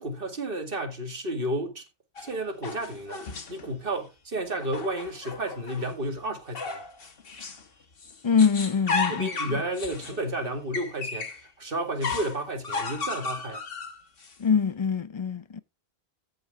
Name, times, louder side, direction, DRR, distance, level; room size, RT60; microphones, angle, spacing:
voice 1, 0.0-1.8 2.2-6.8 9.1-13.6, right 1 dB, 60° right, 2.3 m, -32 dB
sound 1, 2.2-3.7 4.6-5.9 6.6-7.7 8.0-11.4 12.0-14.3, left 4 dB, 60° left, 1.5 m, -34 dB
voice 2, 8.2-9.6 14.4-15.6, left 6 dB, 40° left, 0.4 m, -24 dB
14.0 x 5.0 x 3.6 m
omnidirectional pair, 1.1 m